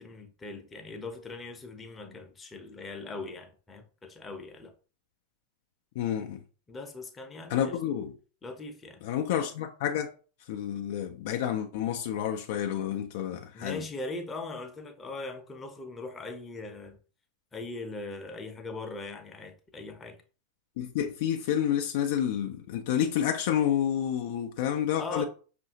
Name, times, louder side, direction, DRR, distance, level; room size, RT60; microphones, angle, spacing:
voice 1, 0.0-4.7 6.7-7.8 8.4-9.0 13.5-17.0 17.5-20.2 25.0-25.2, left 2 dB, 15° left, 0.7 m, -40 dB
voice 2, 6.0-6.4 7.5-8.1 9.0-10.1 10.5-13.8 20.8-25.2, left 10 dB, 50° left, 0.4 m, -29 dB
5.4 x 2.5 x 2.7 m
figure-of-eight pair, 90°, 0 cm